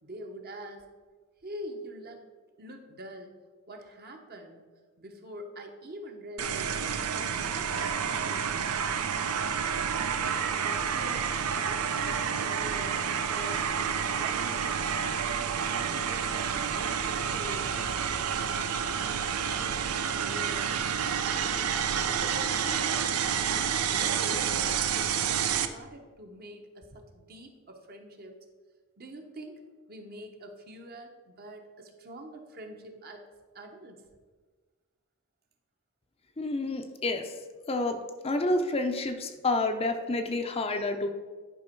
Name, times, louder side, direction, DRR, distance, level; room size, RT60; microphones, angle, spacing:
voice 1, 0.0-0.9 1.4-2.3 2.6-3.4 3.7-4.6 5.0-8.7 9.3-11.3 11.6-13.6 14.2-14.7 15.6-17.7 18.1-20.8 21.1-21.6 21.9-23.2 23.5-28.4 29.0-29.6 29.9-33.3 33.5-34.0, right 1 dB, 45° right, 4 dB, 1.0 m, -44 dB
sound 1, 6.4-25.7, right 7 dB, 85° right, 0.6 m, -29 dB
voice 2, 36.4-37.4 37.7-38.0 38.2-41.1, left 2 dB, 25° left, 6 dB, 0.5 m, -29 dB
10.5 x 5.2 x 4.5 m, 1.4 s
head